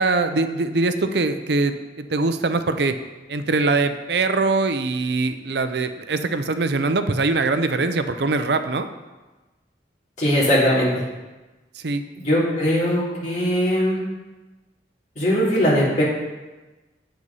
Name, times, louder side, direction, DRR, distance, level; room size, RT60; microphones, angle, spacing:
voice 1, 0.0-3.0 3.3-8.9 11.8-12.0, right 3 dB, 70° right, 9 dB, 0.6 m, -22 dB
voice 2, 10.2-10.9 12.2-14.0 15.2-16.0, equal, 40° left, -7 dB, 3.5 m, -20 dB
8.1 x 8.0 x 5.5 m, 1.2 s
head